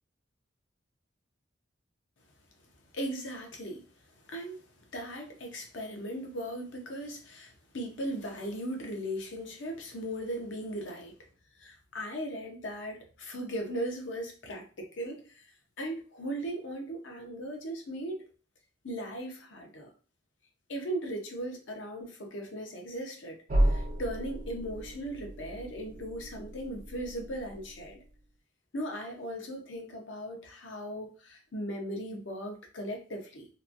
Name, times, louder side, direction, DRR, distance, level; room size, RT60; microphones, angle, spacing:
voice 1, 2.9-3.9 4.3-4.6 4.9-11.1 11.6-15.4 15.8-18.3 18.8-19.9 20.7-23.4 23.6-28.0 28.7-33.5, right 1 dB, 80° left, 2 dB, 0.7 m, -38 dB
sound 1, 23.5-28.2, right 1 dB, 45° right, 0.5 m, -33 dB
2.9 x 2.2 x 2.5 m, 0.38 s
head